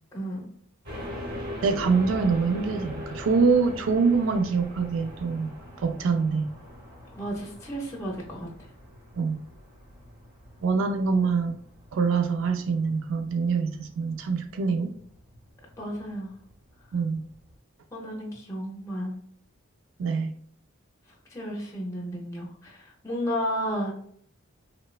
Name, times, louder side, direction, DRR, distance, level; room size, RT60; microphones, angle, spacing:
voice 1, 0.1-0.5 7.2-8.5 15.8-16.3 17.9-19.1 21.3-23.9, equal, 15° left, -2 dB, 0.4 m, -32 dB
sound 1, 0.9-17.5, equal, 45° right, 0.8 m, -42 dB
voice 2, 1.6-5.5 5.8-6.5 9.2-9.4 10.6-11.6 11.9-14.9 16.9-17.2 20.0-20.3, right 4 dB, 65° right, 7 dB, 0.3 m, -24 dB
3.0 x 2.1 x 2.2 m, 0.62 s
head